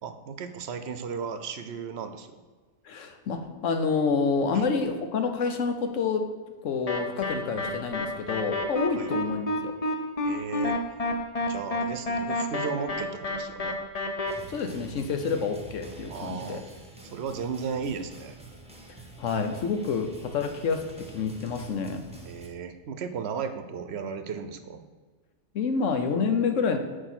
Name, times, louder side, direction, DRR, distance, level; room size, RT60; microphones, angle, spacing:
voice 1, 0.0-2.3 4.5-4.6 8.9-9.1 10.2-10.8 11.4-13.8 16.1-16.6 17.1-18.4 22.3-24.8, right 6 dB, 65° right, 9 dB, 0.8 m, -35 dB
voice 2, 2.8-6.3 6.6-9.7 14.5-16.6 19.2-22.0 25.5-26.8, left 5 dB, 80° left, 7 dB, 1.2 m, -28 dB
sound 1, 6.9-14.3, left 1 dB, 35° left, 0.7 m, -29 dB
sound 2, 14.3-22.5, right 2 dB, 5° right, 0.8 m, -47 dB
6.7 x 4.8 x 6.0 m, 1.5 s
omnidirectional pair, 1.3 m